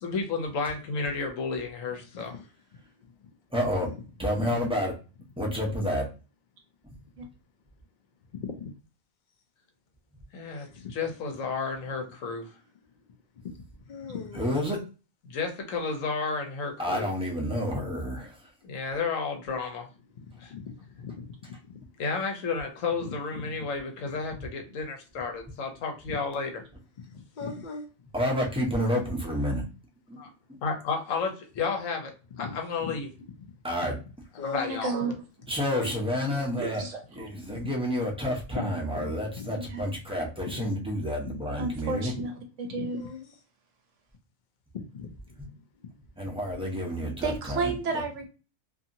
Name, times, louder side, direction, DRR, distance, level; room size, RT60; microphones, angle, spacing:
voice 1, 0.0-2.4 10.3-12.5 15.2-17.1 18.6-19.9 20.4-20.5 22.0-26.5 30.2-30.3 30.6-32.1 32.4-33.1 34.4-34.9, left 4 dB, 75° left, 1.1 m, -32 dB
voice 2, 3.5-3.9 4.2-4.9 5.4-6.1 14.3-14.8 16.8-18.5 28.1-29.6 30.1-30.2 30.5-30.6 33.6-34.0 35.5-36.8 37.1-42.1 46.2-48.0, equal, 5° right, 0.5 m, -29 dB
voice 3, 8.3-8.7 10.6-11.0 13.4-14.6 20.2-21.9 23.0-23.6 24.1-24.2 26.1-26.2 27.0-27.9 29.5-29.6 32.3-33.0 33.4-33.5 34.4-34.6 35.7-36.0 38.6-39.5 42.2-42.3 42.7-43.4 44.7-45.6, left 5 dB, 50° left, 0.5 m, -40 dB
voice 4, 34.5-35.2 36.6-37.3 39.5-39.8 41.6-42.3 42.6-43.1 47.2-48.3, right 3 dB, 70° right, 0.9 m, -32 dB
2.8 x 2.7 x 2.6 m
omnidirectional pair, 1.4 m